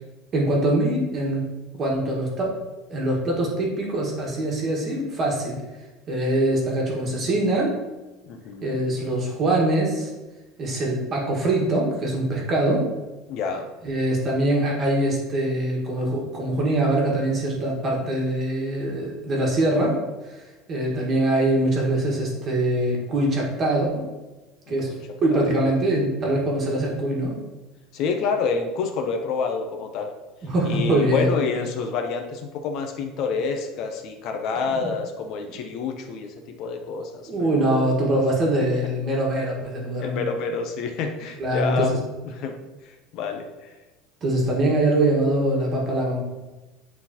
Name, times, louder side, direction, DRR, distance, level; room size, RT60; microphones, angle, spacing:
voice 1, 0.3-1.4 1.8-2.5 2.9-5.6 6.1-7.7 8.6-10.1 10.6-12.9 13.8-24.1 24.7-27.4 30.4-31.4 34.5-34.9 37.3-40.2 41.4-42.0 44.2-46.2, right 1 dB, 25° right, -2 dB, 1.5 m, -23 dB
voice 2, 8.3-8.8 13.3-13.7 24.7-24.8 25.3-25.7 27.9-30.1 30.6-37.9 40.0-42.0 42.2-42.5 42.8-43.7, left 5 dB, 45° left, 4 dB, 0.6 m, -28 dB
9.1 x 4.0 x 2.9 m, 1.2 s
cardioid pair, 170°, 0 cm